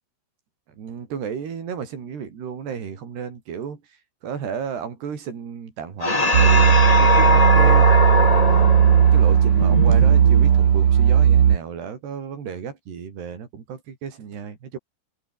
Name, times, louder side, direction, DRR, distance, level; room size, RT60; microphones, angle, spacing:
voice 1, 0.8-8.6 9.1-14.8, right 7 dB, 85° right, 6.2 m, -33 dB
sound 1, 6.0-10.8, left 2 dB, 85° left, 0.3 m, -21 dB
sound 2, 6.3-11.6, right 9 dB, 55° right, 1.7 m, -15 dB
omnidirectional pair, 4.6 m